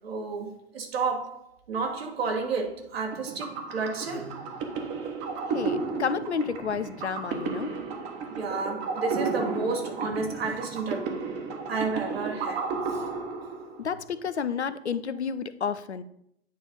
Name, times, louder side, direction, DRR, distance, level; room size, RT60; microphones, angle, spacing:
voice 1, 0.0-4.3 8.3-11.2 11.7-13.0, right 4 dB, 65° right, 1.5 m, -31 dB
sound 1, 3.1-13.9, right 4 dB, 30° right, 1.1 m, -33 dB
voice 2, 5.5-7.7 13.8-16.0, left 6 dB, 85° left, 0.5 m, -31 dB
9.2 x 3.2 x 5.2 m
figure-of-eight pair, 95°, 33 cm